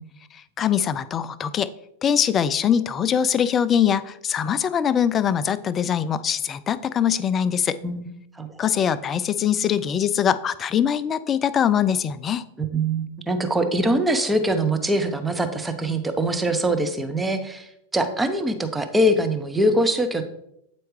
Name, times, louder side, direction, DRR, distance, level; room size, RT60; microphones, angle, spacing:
voice 1, 0.6-1.7 2.0-7.8 8.6-12.4, left 8 dB, 25° left, 15 dB, 0.3 m, -22 dB
voice 2, 12.6-20.2, right 1 dB, 10° right, 7 dB, 0.6 m, -23 dB
8.5 x 4.5 x 3.1 m, 0.77 s
figure-of-eight pair, 90°, 0 cm